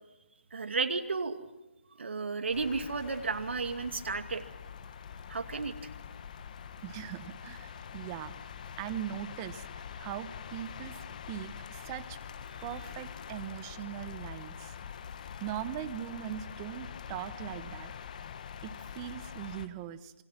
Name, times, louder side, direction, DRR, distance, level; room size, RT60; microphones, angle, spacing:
voice 1, 0.5-1.4 2.0-4.4 5.3-5.8, right 4 dB, 65° right, 7 dB, 2.4 m, -33 dB
sound 1, 2.5-19.7, left 7 dB, 40° left, 1.3 m, -45 dB
voice 2, 6.8-8.3 8.8-11.0 11.3-12.2 12.6-14.7 15.4-17.9 18.6-20.1, right 12 dB, 20° right, 13 dB, 1.0 m, -40 dB
27.0 x 23.5 x 6.0 m, 1.0 s
hypercardioid pair, 160°, 7 cm